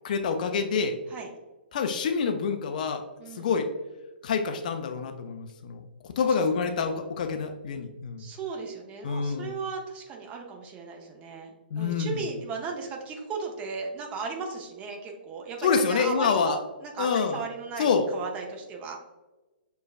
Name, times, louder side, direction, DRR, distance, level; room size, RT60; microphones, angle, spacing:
voice 1, 0.0-1.0 1.7-3.0 3.4-3.7 4.2-5.8 6.2-8.2 9.0-9.5 11.7-12.2 15.6-16.6 17.0-17.4 17.8-18.1, left 5 dB, 50° left, 6 dB, 0.4 m, -27 dB
voice 2, 3.2-3.5 6.2-6.3 8.2-11.5 11.8-19.0, right 4 dB, 20° right, 0 dB, 0.7 m, -36 dB
6.3 x 2.3 x 2.3 m, 1.1 s
figure-of-eight pair, 120°, 6 cm